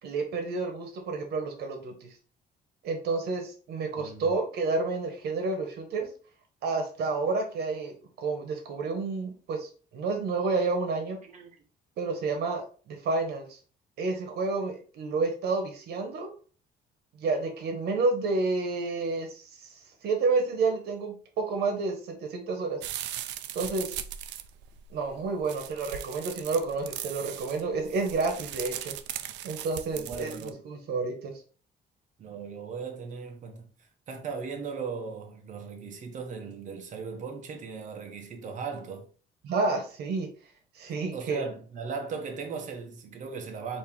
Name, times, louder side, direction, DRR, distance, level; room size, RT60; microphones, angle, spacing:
voice 1, 0.0-1.9 2.8-6.1 6.6-11.2 12.0-13.6 14.0-16.3 17.2-19.7 20.0-22.8 23.5-23.9 24.9-28.9 29.4-31.3 39.4-40.3 40.8-41.4, right 3 dB, 65° right, 1.3 m, -30 dB
voice 2, 4.0-4.4 11.2-11.6 29.9-30.6 32.2-33.7 34.1-39.1 41.1-43.8, right 5 dB, 45° right, 0.9 m, -38 dB
sound 1, 22.8-30.5, right 11 dB, 90° right, 0.5 m, -39 dB
4.3 x 2.9 x 3.5 m
cardioid pair, 160°, 18 cm